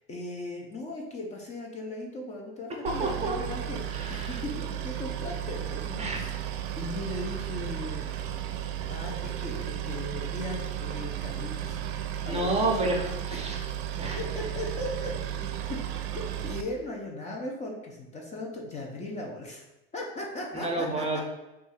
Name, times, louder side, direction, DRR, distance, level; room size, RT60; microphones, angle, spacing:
voice 1, 0.0-3.8 4.1-6.3 6.8-8.1 8.9-11.8 12.2-12.7 14.2-15.1 15.7-19.6 19.9-21.2, left 2 dB, 25° left, 0 dB, 0.5 m, -38 dB
Boat Water vehicle, 2.9-16.6, right 10 dB, 70° right, 0.5 m, -34 dB
voice 2, 3.0-3.5 3.9-4.4 6.0-6.2 12.3-13.6 14.0-14.2 20.5-21.2, right 2 dB, 20° right, 1 dB, 0.6 m, -30 dB
2.7 x 2.4 x 4.1 m, 0.98 s
supercardioid pair, 110°, 31 cm